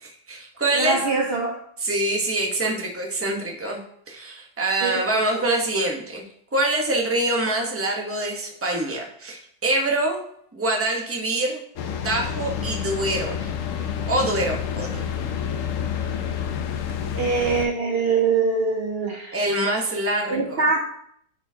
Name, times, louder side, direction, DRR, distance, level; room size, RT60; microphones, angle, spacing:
voice 1, 0.0-1.0 1.8-6.2 6.5-10.2 10.5-11.6 12.0-13.5 14.1-15.0 19.3-20.6, right 1 dB, 10° right, 1 dB, 0.6 m, -25 dB
voice 2, 0.7-1.6 4.8-5.0 5.3-5.4 17.1-19.4 20.3-20.8, right 4 dB, 75° right, 1 dB, 0.5 m, -23 dB
sound 1, 11.8-17.7, left 8 dB, 65° left, 0.8 m, -29 dB
10.5 x 4.4 x 2.7 m, 0.69 s
omnidirectional pair, 1.9 m